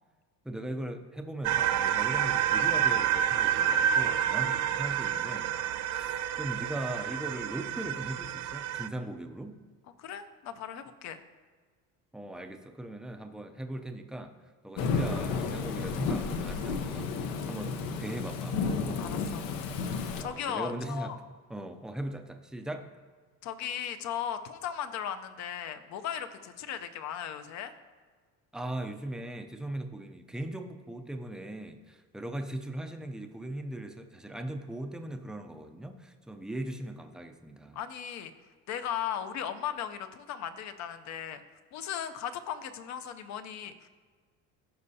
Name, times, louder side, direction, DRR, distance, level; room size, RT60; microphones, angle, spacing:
voice 1, 0.4-5.5 5.8-9.6 12.1-14.3 14.6-18.6 20.2-21.1 21.5-22.9 28.5-37.8, right 1 dB, ahead, 5 dB, 0.4 m, -39 dB
sound 1, 1.4-8.9, right 9 dB, 65° right, 0.5 m, -28 dB
voice 2, 10.0-11.2 19.0-19.5 20.2-21.2 23.4-27.7 37.7-38.3 38.7-41.4 41.7-43.9, left 9 dB, 55° left, 10 dB, 0.6 m, -37 dB
Thunderstorm / Rain, 14.8-20.2, left 5 dB, 85° left, 0.8 m, -32 dB
15.0 x 5.4 x 2.8 m, 1.5 s
cardioid pair, 130°, 33 cm